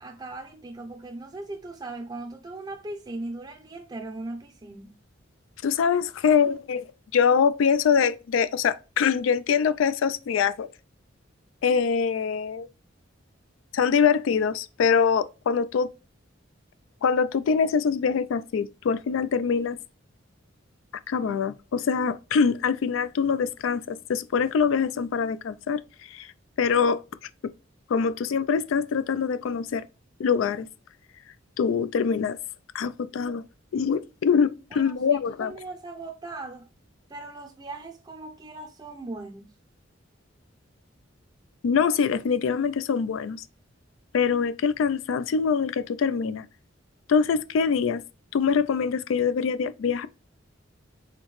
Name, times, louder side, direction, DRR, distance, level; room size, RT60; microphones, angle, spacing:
voice 1, 0.0-5.0 34.7-36.7 37.1-39.6, right 2 dB, 20° right, 0.5 m, -39 dB
voice 2, 5.6-6.9 7.1-10.7 11.6-12.7 13.7-15.9 17.0-19.8 21.1-25.8 26.1-26.3 26.6-27.0 27.9-29.8 30.2-30.7 31.6-32.4 32.7-33.4 33.7-35.5 41.6-43.4 44.1-46.5 47.1-48.0 48.3-50.1, left 6 dB, 80° left, 0.3 m, -24 dB
4.4 x 3.5 x 3.0 m
head